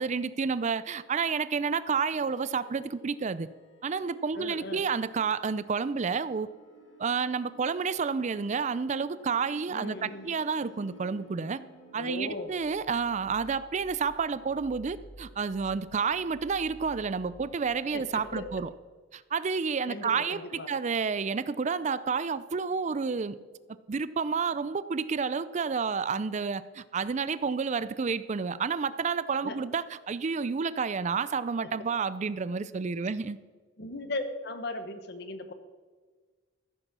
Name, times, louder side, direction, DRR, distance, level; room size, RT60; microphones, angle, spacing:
voice 1, 0.0-3.5 3.8-6.5 7.0-11.6 11.9-18.7 19.1-23.4 23.7-33.4, right 5 dB, 40° right, 16 dB, 0.4 m, -30 dB
sound 1, 2.1-18.7, equal, 85° left, 2.2 m, -54 dB
voice 2, 4.3-4.8 9.7-10.3 11.9-12.5 17.9-18.5 19.9-20.7 29.4-29.6 31.6-31.7 33.8-35.5, left 2 dB, 60° left, 9 dB, 1.3 m, -37 dB
14.5 x 7.9 x 6.2 m, 1.4 s
head